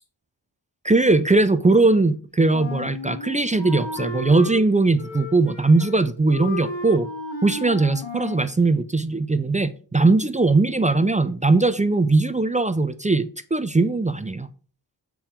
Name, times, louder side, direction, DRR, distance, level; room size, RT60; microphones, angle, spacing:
voice 1, 0.8-7.1 7.4-14.5, right 3 dB, 20° right, 0.4 m, -20 dB
Wind instrument woodwind instrument, 2.5-4.6 5.0-6.0 6.3-8.5, left 2 dB, 75° left, 1.5 m, -33 dB
6.9 x 4.4 x 3.7 m
wide cardioid pair, 70°, 45 cm